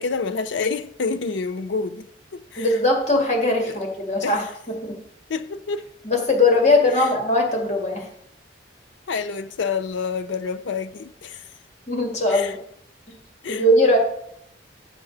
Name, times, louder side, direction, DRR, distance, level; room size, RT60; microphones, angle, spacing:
voice 1, 0.0-2.7 3.7-3.8 4.2-4.4 5.3-5.9 7.0-7.1 9.1-11.4 12.3-12.5 13.4-13.6, left 5 dB, 80° left, 0.5 m, -28 dB
voice 2, 2.6-4.4 4.8-5.0 6.0-8.1 11.9-12.6 13.5-14.0, left 2 dB, 40° left, 1.8 m, -20 dB
10.5 x 7.5 x 3.9 m
head